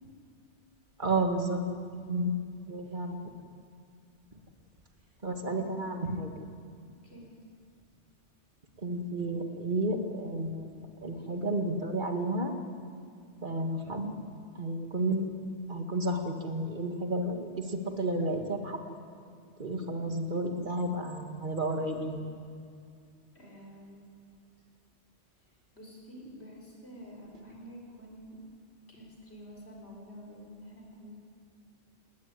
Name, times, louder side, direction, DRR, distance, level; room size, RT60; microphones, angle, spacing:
voice 1, 1.0-1.6 2.1-2.3 2.7-3.2 4.3-4.4 5.2-6.3 8.8-12.5 13.4-14.1 14.6-15.3 15.7-18.8 19.6-22.3, right 1 dB, 45° right, 4 dB, 2.0 m, -32 dB
voice 2, 5.4-5.9 7.0-7.3 23.3-24.1 25.7-28.4 28.9-31.1, equal, 65° left, -1 dB, 4.6 m, -49 dB
19.0 x 19.0 x 9.7 m, 2.3 s
omnidirectional pair, 1.2 m